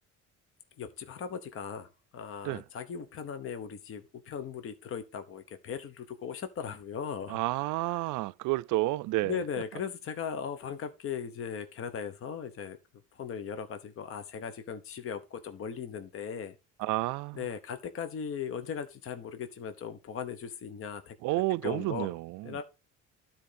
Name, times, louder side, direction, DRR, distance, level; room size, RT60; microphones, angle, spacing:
voice 1, 0.8-1.9 2.1-7.4 9.2-12.8 13.1-16.6 17.3-21.1 21.6-22.1 22.4-22.6, left 7 dB, 45° left, 1.1 m, -38 dB
voice 2, 7.3-9.4 16.8-17.5 21.2-22.6, right 19 dB, 70° right, 0.5 m, -30 dB
12.0 x 4.5 x 5.1 m
cardioid pair, 130°, 32 cm